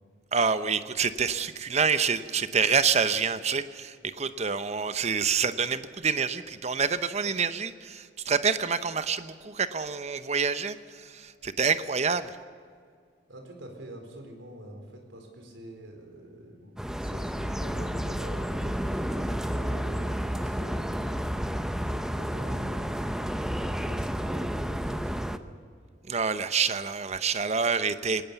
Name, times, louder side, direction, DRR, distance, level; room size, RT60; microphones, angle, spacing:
voice 1, 0.3-12.4 26.1-28.3, right 5 dB, 35° right, 12 dB, 0.8 m, -27 dB
voice 2, 13.3-22.9 23.5-25.5, right 1 dB, 85° right, 3 dB, 4.3 m, -45 dB
sound 1, 16.8-25.4, equal, 5° right, 0.6 m, -31 dB
20.5 x 18.5 x 7.1 m, 2.1 s
head